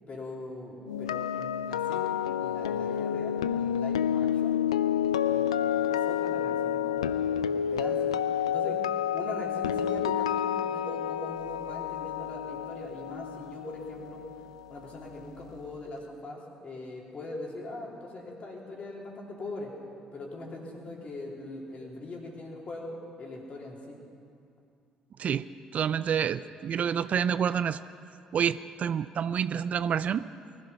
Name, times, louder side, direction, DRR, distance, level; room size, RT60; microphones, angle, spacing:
voice 1, 0.1-4.6 5.2-8.1 8.5-8.8 9.1-14.2 14.7-19.7 20.1-24.0, left 2 dB, 45° left, -2 dB, 3.6 m, -41 dB
sound 1, 0.9-14.9 15.2-15.5, left 9 dB, 90° left, 0.3 m, -29 dB
voice 2, 25.2-27.9 28.3-30.3, right 8 dB, 50° right, 15 dB, 0.4 m, -28 dB
19.5 x 13.0 x 5.7 m, 2.5 s
hypercardioid pair, 55°, 3 cm